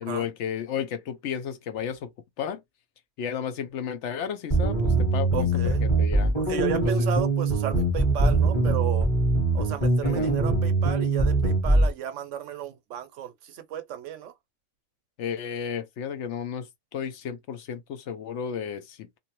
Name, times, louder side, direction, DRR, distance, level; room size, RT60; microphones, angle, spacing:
voice 1, 0.0-2.1 2.4-2.6 3.2-6.4 6.8-7.1 10.0-10.4 15.2-19.2, left 8 dB, 70° left, 0.8 m, -33 dB
sound 1, 4.5-11.9, right 2 dB, 25° left, 1.1 m, -23 dB
voice 2, 5.3-5.8 6.4-9.1 9.5-14.3, right 10 dB, 75° right, 0.9 m, -33 dB
2.7 x 2.5 x 2.8 m
omnidirectional pair, 1.3 m